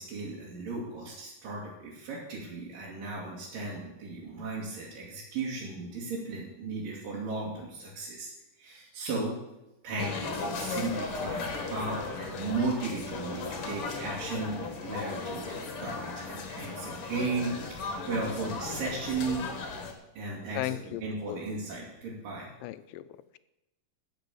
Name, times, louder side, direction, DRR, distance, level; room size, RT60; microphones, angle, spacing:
voice 1, 0.0-8.3 8.6-9.4 9.8-19.4 20.2-22.5, right 3 dB, 75° right, -6 dB, 3.9 m, -35 dB
sound 1, 10.0-19.9, left 4 dB, 50° left, 2.0 m, -36 dB
voice 2, 20.6-21.4 22.6-23.1, left 15 dB, 85° left, 15 dB, 2.2 m, -36 dB
13.5 x 6.2 x 8.3 m, 0.95 s
omnidirectional pair, 4.0 m